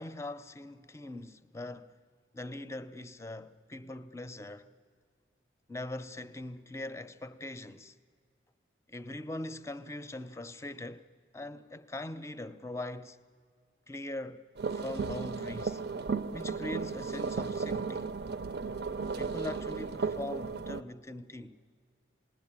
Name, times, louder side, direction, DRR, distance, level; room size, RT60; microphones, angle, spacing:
voice 1, 0.0-2.0 2.3-4.7 5.7-8.0 8.9-11.1 11.3-13.2 13.9-14.5 14.7-15.8 16.3-18.2 19.2-21.6, left 1 dB, 15° left, 0.6 m, -41 dB
sound 1, 14.6-20.8, right 4 dB, 65° right, 0.6 m, -35 dB
28.0 x 20.0 x 8.8 m
head